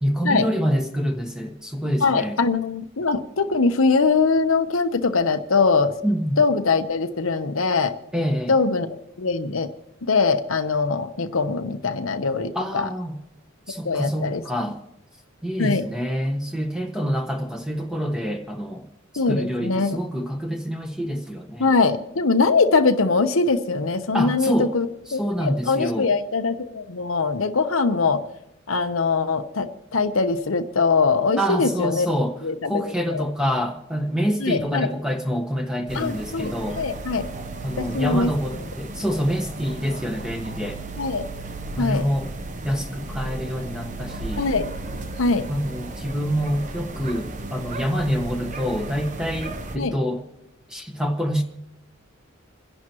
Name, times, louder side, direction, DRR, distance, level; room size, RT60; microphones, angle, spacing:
voice 1, 0.0-2.3 6.0-6.4 8.1-8.5 12.5-13.2 13.7-14.8 15.4-18.9 19.3-21.7 24.1-24.7 25.1-26.1 31.4-32.3 32.6-36.8 37.6-40.8 41.7-42.3 42.6-44.5 45.5-50.2 50.7-51.4, equal, 5° right, 1.3 m, -26 dB
voice 2, 2.0-5.9 6.4-7.9 8.5-9.7 10.1-12.9 13.8-14.4 15.6-15.8 19.2-20.0 21.6-28.2 28.7-32.1 32.4-32.8 33.1-33.2 34.4-34.9 35.9-37.2 37.8-38.3 41.0-41.3 41.8-42.1 44.4-44.7 45.2-45.5 49.8-49.9, left 4 dB, 85° left, 0.9 m, -22 dB
sound 1, 35.9-49.8, right 2 dB, 40° right, 0.9 m, -35 dB
28.5 x 11.0 x 3.0 m
head